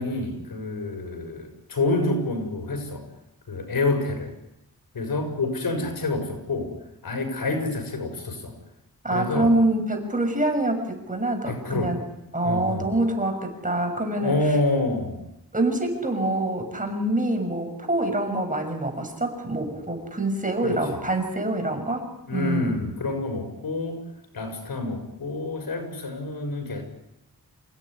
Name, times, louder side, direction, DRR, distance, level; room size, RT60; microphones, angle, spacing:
voice 1, 0.0-3.0 3.5-4.3 4.9-6.7 7.0-8.5 9.1-9.5 11.4-11.9 12.4-12.9 14.2-15.2 20.6-21.0 22.2-24.0 24.3-26.8, left 2 dB, 85° left, 5 dB, 6.5 m, -27 dB
voice 2, 9.0-12.0 12.3-14.4 15.5-22.7, right 1 dB, 20° right, 5 dB, 6.4 m, -25 dB
29.0 x 16.5 x 10.0 m, 0.88 s
wide cardioid pair, 105°, 36 cm